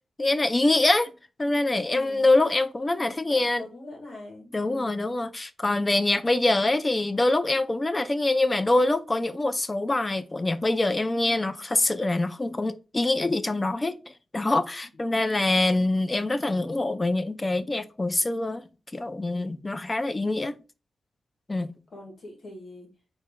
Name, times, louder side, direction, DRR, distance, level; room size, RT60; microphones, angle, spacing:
voice 1, 0.2-1.1 1.4-3.6 4.5-14.0 14.3-18.7 18.9-20.6 21.5-21.7, left 2 dB, 30° left, 0.4 m, -24 dB
voice 2, 1.8-2.3 3.3-5.2 14.9-15.0 21.9-22.9, left 2 dB, 65° left, 2.0 m, -44 dB
4.0 x 3.0 x 3.7 m
cardioid pair, 60°, 0 cm